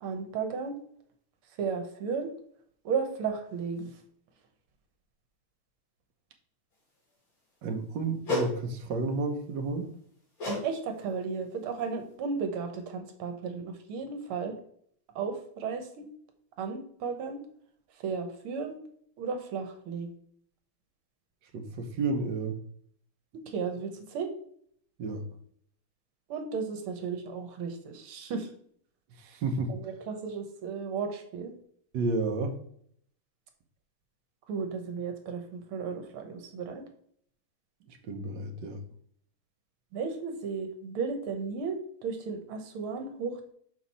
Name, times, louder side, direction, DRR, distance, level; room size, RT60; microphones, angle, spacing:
voice 1, 0.0-0.7 1.6-2.3 2.9-4.0 10.5-14.6 15.2-16.1 16.6-17.4 18.0-18.8 19.2-20.1 23.5-24.3 26.3-28.5 29.7-31.5 34.5-36.8 39.9-43.5, right 5 dB, 85° right, 6 dB, 1.9 m, -34 dB
voice 2, 7.6-9.9 21.5-22.6 25.0-25.2 29.1-29.7 31.9-32.6 37.9-38.8, right 3 dB, 60° right, 3 dB, 1.5 m, -31 dB
sound 1, 8.2-8.6 10.4-10.7 10.9-11.2 11.8-11.9, left 2 dB, 60° left, 3.4 m, -31 dB
6.2 x 4.7 x 4.1 m, 0.63 s
omnidirectional pair, 2.3 m